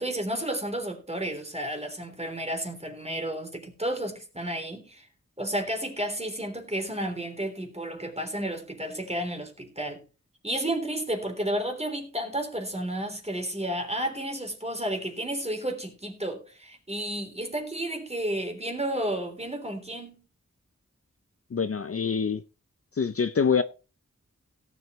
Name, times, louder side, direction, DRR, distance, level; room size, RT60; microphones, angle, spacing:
voice 1, 0.0-5.1 5.4-10.0 10.4-20.2, right 1 dB, 20° right, 3.5 m, -32 dB
voice 2, 21.5-22.4 22.9-23.6, left 6 dB, 50° left, 0.6 m, -25 dB
17.5 x 8.0 x 3.1 m
wide cardioid pair, 55°, 31 cm